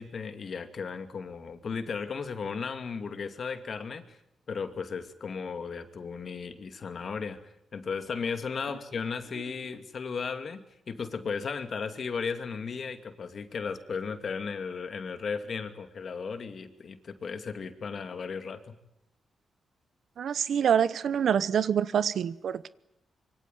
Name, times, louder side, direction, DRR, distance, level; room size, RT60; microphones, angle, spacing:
voice 1, 0.0-4.2 4.5-7.4 7.7-18.7, left 5 dB, 55° left, 2.6 m, -35 dB
voice 2, 20.2-22.7, right 8 dB, 75° right, 1.0 m, -26 dB
26.0 x 23.5 x 9.3 m
cardioid pair, 85°, 0 cm